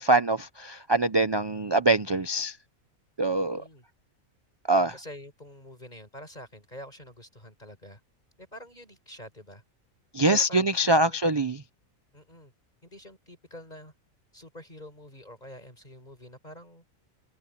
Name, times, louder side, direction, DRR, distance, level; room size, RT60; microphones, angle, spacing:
voice 1, 0.0-2.6 3.2-3.6 4.7-4.9 10.1-11.6, right 2 dB, 30° right, 0.5 m, -24 dB
voice 2, 3.3-3.8 4.9-8.0 8.4-9.6 10.2-11.2 12.1-12.5 12.8-13.9 14.3-16.8, left 1 dB, 30° left, 5.5 m, -46 dB
omnidirectional pair, 1.5 m